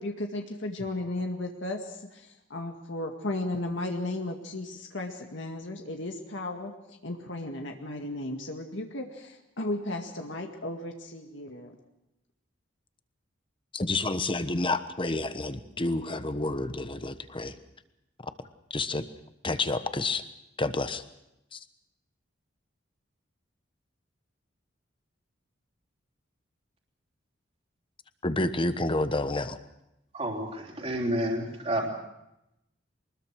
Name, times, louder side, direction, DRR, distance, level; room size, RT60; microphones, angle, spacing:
voice 1, 0.0-6.7 7.0-11.8, left 2 dB, 70° left, 3 dB, 2.1 m, -35 dB
voice 2, 13.7-17.5 18.7-19.1 19.4-20.2 20.6-21.0 21.5-21.6 28.2-29.6, left 2 dB, 25° left, 11 dB, 1.2 m, -29 dB
voice 3, 30.1-31.9, right 1 dB, 35° right, -2 dB, 3.3 m, -30 dB
23.5 x 21.0 x 6.4 m, 0.86 s
head